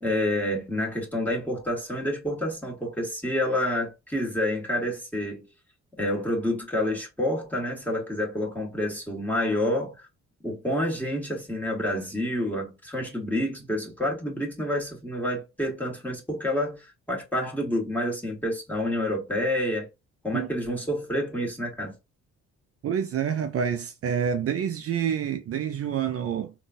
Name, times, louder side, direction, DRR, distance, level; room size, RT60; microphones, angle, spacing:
voice 1, 0.0-5.4 6.0-10.1 10.4-19.9 20.2-22.0, left 1 dB, 5° left, 1.4 m, -28 dB
voice 2, 22.8-26.5, right 8 dB, 50° right, 0.4 m, -27 dB
3.7 x 2.3 x 2.5 m
cardioid pair, 90°, 30 cm